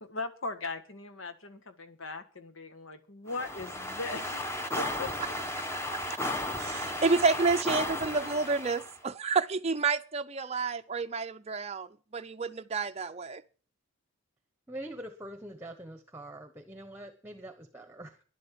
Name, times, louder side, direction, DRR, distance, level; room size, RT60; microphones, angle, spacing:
voice 1, 0.0-5.1, left 3 dB, 70° left, 1.6 m, -39 dB
sound 1, 3.3-9.0, left 1 dB, 10° left, 1.0 m, -34 dB
voice 2, 6.6-13.4, right 4 dB, 30° right, 0.6 m, -29 dB
voice 3, 14.7-18.2, right 1 dB, 10° right, 1.1 m, -44 dB
12.0 x 11.0 x 7.5 m
head